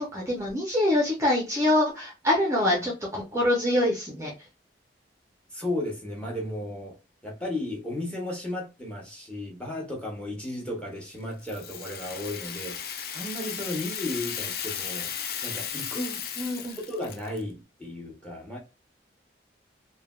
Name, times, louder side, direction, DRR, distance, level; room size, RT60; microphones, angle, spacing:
voice 1, 0.0-4.3 16.4-16.8, left 1 dB, 15° right, 0.6 m, -25 dB
voice 2, 5.5-7.0 7.2-15.1 15.4-16.2 16.8-18.6, left 1 dB, 5° left, 0.9 m, -34 dB
Rattle (instrument), 11.4-17.4, left 8 dB, 55° left, 0.4 m, -35 dB
3.2 x 2.2 x 2.3 m
head